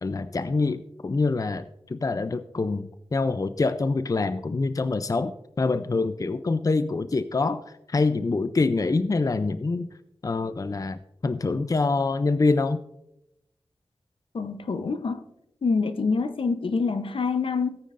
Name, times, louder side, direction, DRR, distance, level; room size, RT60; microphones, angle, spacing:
voice 1, 0.0-7.6 7.9-9.9 10.2-12.8, left 3 dB, 40° left, 0.5 m, -25 dB
voice 2, 14.3-15.2 15.6-17.8, left 4 dB, 70° left, 0.8 m, -26 dB
17.5 x 8.9 x 2.6 m
cardioid pair, 50°, 9 cm